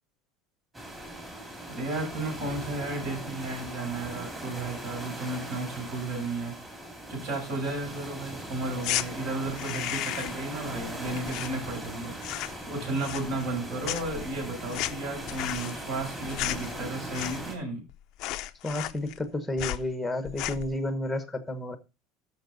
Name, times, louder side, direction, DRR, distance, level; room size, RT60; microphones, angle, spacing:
sound 1, 0.7-17.6, right 1 dB, 10° right, 2.6 m, -40 dB
voice 1, 1.7-6.5 7.1-17.8, right 2 dB, 55° right, 7.1 m, -33 dB
sound 2, 8.8-9.1 9.5-10.5 10.7-11.9 12.2-12.7 13.0-13.6 13.8-17.6 17.9-18.0 18.2-19.3 19.6-19.9 20.3-20.7, left 16 dB, 45° left, 0.5 m, -34 dB
voice 2, 18.6-21.8, left 1 dB, 5° left, 1.1 m, -31 dB
13.5 x 5.9 x 4.0 m
cardioid pair, 170°, 0 cm